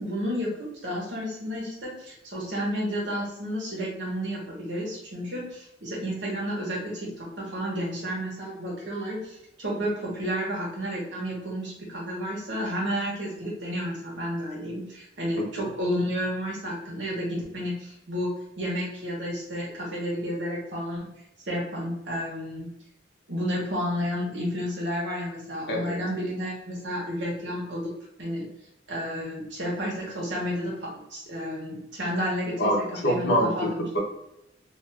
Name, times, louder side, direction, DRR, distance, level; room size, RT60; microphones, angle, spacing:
voice 1, 0.0-21.1 21.5-22.7 23.3-27.9 28.2-28.5 28.9-32.7 33.0-33.8, equal, 85° right, -4 dB, 1.1 m, -31 dB
voice 2, 25.7-26.0 32.6-33.7 33.9-34.0, equal, 65° left, 0 dB, 0.8 m, -25 dB
2.6 x 2.4 x 3.3 m, 0.83 s
head